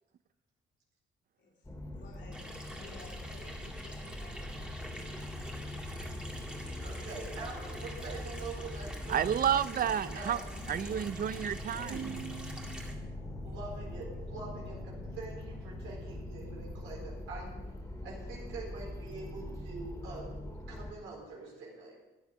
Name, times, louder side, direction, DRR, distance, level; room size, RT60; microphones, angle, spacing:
voice 1, 1.4-5.0, left 3 dB, 65° left, -3 dB, 3.7 m, -55 dB
sound 1, 1.6-20.9, left 1 dB, 15° left, 2.3 m, -42 dB
Water tap faucet / Sink (filling or washing), 2.3-13.0, right 1 dB, 5° right, 2.0 m, -47 dB
voice 2, 6.8-9.3 10.1-10.5 11.8-11.9 13.4-17.5 18.0-20.4 20.7-22.0, right 3 dB, 90° right, -4 dB, 4.4 m, -45 dB
voice 3, 9.1-10.4 10.7-12.8, right 9 dB, 50° right, 17 dB, 0.5 m, -31 dB
14.0 x 9.3 x 5.4 m, 1.1 s
cardioid pair, 90°, 20 cm